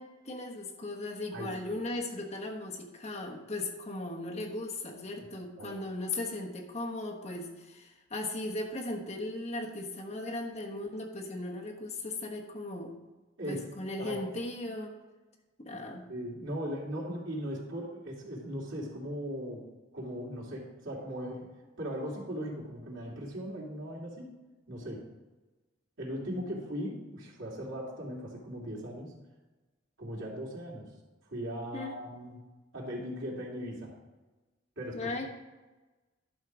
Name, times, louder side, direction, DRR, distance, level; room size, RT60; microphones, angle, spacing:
voice 1, 0.0-12.9 13.5-15.0 15.6-16.1 31.7-31.9 34.9-35.3, left 2 dB, 35° left, 0 dB, 1.2 m, -37 dB
voice 2, 1.3-1.8 5.6-5.7 13.4-13.7 14.0-14.2 16.1-19.6 19.9-21.5 21.8-24.3 24.7-25.1 26.0-29.1 30.0-30.9 31.3-32.4 32.7-33.9 34.8-35.3, equal, 85° right, -4 dB, 2.7 m, -38 dB
11.5 x 4.6 x 6.2 m, 1.2 s
head